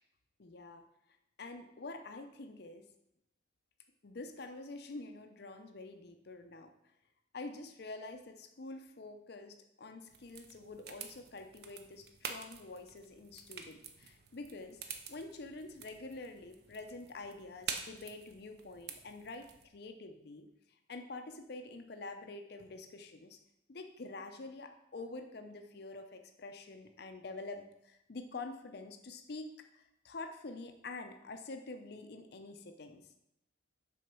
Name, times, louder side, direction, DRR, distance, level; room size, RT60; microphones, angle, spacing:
voice 1, 0.4-0.8 1.4-2.9 4.0-6.7 7.3-23.4 23.7-33.1, left 3 dB, 55° left, 6 dB, 0.6 m, -47 dB
sound 1, 10.1-19.7, right 6 dB, 55° right, 0.6 m, -48 dB
6.2 x 3.9 x 5.9 m, 0.81 s
head